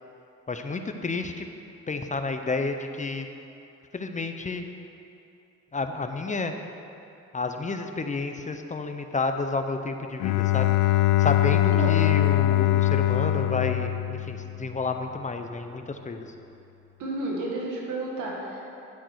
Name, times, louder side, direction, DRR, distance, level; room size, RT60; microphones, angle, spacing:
voice 1, 0.5-1.5 1.9-3.3 3.9-4.7 5.7-6.5 7.3-10.7 11.2-16.3, left 3 dB, 25° left, 6 dB, 0.7 m, -30 dB
Bowed string instrument, 10.2-14.9, left 14 dB, 75° left, 0.5 m, -22 dB
voice 2, 17.0-18.6, right 2 dB, 90° right, -2 dB, 2.1 m, -31 dB
10.5 x 8.5 x 4.8 m, 2.8 s
cardioid pair, 90°, 30 cm